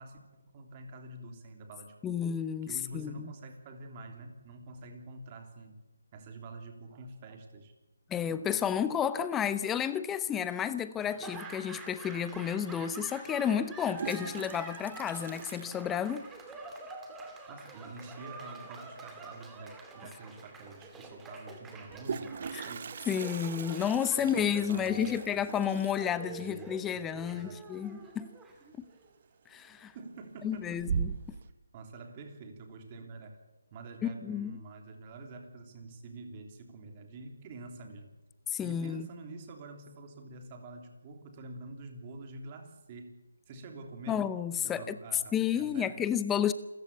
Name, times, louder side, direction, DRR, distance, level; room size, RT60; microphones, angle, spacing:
voice 1, 0.0-2.2 2.6-5.8 6.1-7.7 17.5-22.8 24.2-25.7 26.2-27.6 29.9-30.8 31.7-33.4 33.7-38.1 38.6-44.3 44.6-46.1, right 2 dB, 25° right, 3.3 m, -47 dB
voice 2, 2.0-2.7 2.9-3.1 8.1-16.2 22.5-22.7 23.1-28.3 28.8-28.9 29.5-29.9 30.4-31.1 34.0-34.5 38.5-39.1 44.1-44.9 45.3-46.5, left 8 dB, 10° left, 0.7 m, -31 dB
Laughter / Applause, 11.0-29.1, right 3 dB, 10° right, 2.4 m, -47 dB
Toilet flush, 12.3-12.4 13.6-16.5 16.7-16.8 17.1-17.2 17.5-17.9 19.6-19.7 20.0-20.1 21.7-28.4 28.6-29.1 29.5-30.0 30.4-31.4, right 6 dB, 45° right, 1.0 m, -40 dB
27.5 x 14.5 x 8.4 m
figure-of-eight pair, 155°, 0 cm